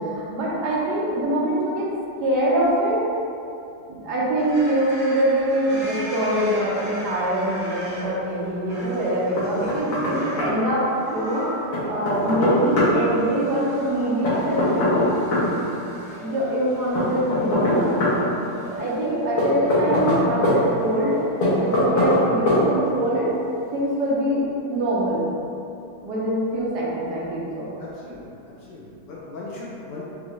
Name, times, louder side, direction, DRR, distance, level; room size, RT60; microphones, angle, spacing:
voice 1, 0.1-1.9 2.2-3.0 3.9-11.5 11.9-15.1 16.1-18.0 18.8-21.2 21.6-23.3 23.7-25.2 26.0-27.7, right 1 dB, 65° right, -6 dB, 1.2 m, -24 dB
sound 1, 4.4-22.1, left 2 dB, 15° left, 1.3 m, -35 dB
Knock, 9.4-10.1 10.4-10.5 11.7-12.9 14.2-15.5 16.9-18.2 19.4-20.6 21.4-22.2 22.5-22.6, left 2 dB, 90° left, 1.8 m, -21 dB
voice 2, 27.8-30.0, left 2 dB, 70° left, -6 dB, 1.1 m, -38 dB
5.4 x 2.4 x 3.0 m, 2.7 s
omnidirectional pair, 2.2 m